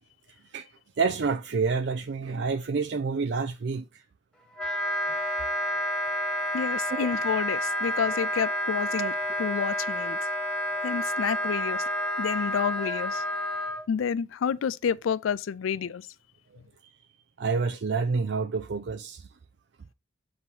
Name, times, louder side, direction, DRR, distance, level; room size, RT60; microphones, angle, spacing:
voice 1, 1.0-4.0 6.9-7.1 9.0-9.1 13.7-13.8 17.4-19.3, right 4 dB, 60° right, 0.4 m, -28 dB
Wind instrument woodwind instrument, 4.5-13.8, equal, 5° left, 1.0 m, -29 dB
voice 2, 6.5-9.1 9.4-10.2 10.8-11.9 12.2-13.2 13.9-16.1, left 7 dB, 90° left, 0.4 m, -29 dB
7.8 x 2.9 x 5.4 m
head